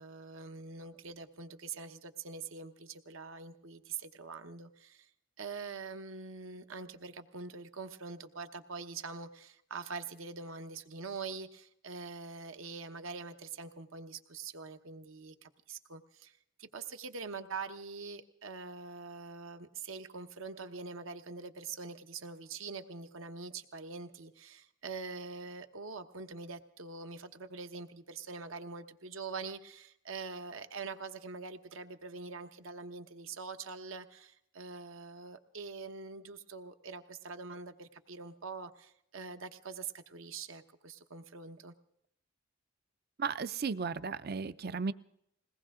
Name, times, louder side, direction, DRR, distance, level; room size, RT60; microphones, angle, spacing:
voice 1, 0.0-5.1 5.4-41.7, right 4 dB, 75° right, 8 dB, 1.1 m, -44 dB
voice 2, 43.2-44.9, right 5 dB, 50° right, 14 dB, 0.5 m, -35 dB
21.5 x 18.0 x 3.7 m, 0.74 s
head